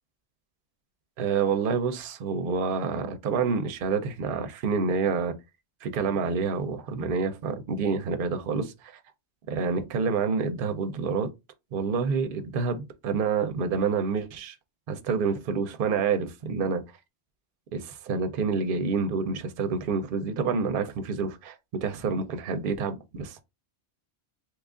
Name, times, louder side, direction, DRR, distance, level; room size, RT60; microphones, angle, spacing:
voice 1, 1.2-5.3 5.8-9.0 9.5-11.3 11.7-14.6 14.9-16.8 17.7-21.6 21.8-23.4, right 5 dB, 60° right, 0.7 m, -28 dB
3.0 x 2.4 x 3.5 m
omnidirectional pair, 1.1 m